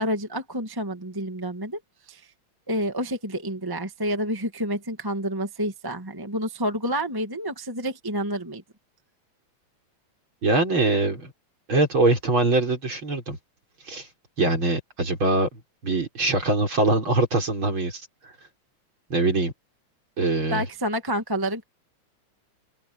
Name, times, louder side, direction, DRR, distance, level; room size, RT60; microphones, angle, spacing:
voice 1, 0.0-1.8 2.1-2.3 2.7-8.6 20.5-21.6, equal, 10° right, 1.4 m, -29 dB
voice 2, 10.4-11.3 11.7-13.4 13.9-14.1 14.4-18.0 19.1-19.5 20.2-20.6, right 2 dB, 40° right, 6.3 m, -23 dB
open air
omnidirectional pair, 3.4 m